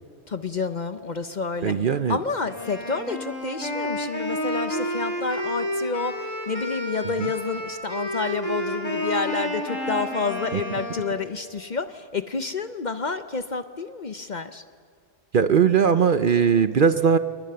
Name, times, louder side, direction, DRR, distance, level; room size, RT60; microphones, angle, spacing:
voice 1, 0.3-1.8 2.1-14.6, left 4 dB, 45° left, 11 dB, 0.8 m, -29 dB
voice 2, 1.6-2.2 7.2-7.3 10.5-10.6 15.3-17.2, right 7 dB, 50° right, 12 dB, 0.8 m, -19 dB
Wind instrument woodwind instrument, 2.4-11.2, equal, 85° left, 5.6 m, -30 dB
27.5 x 21.0 x 6.8 m, 2.3 s
omnidirectional pair, 1.3 m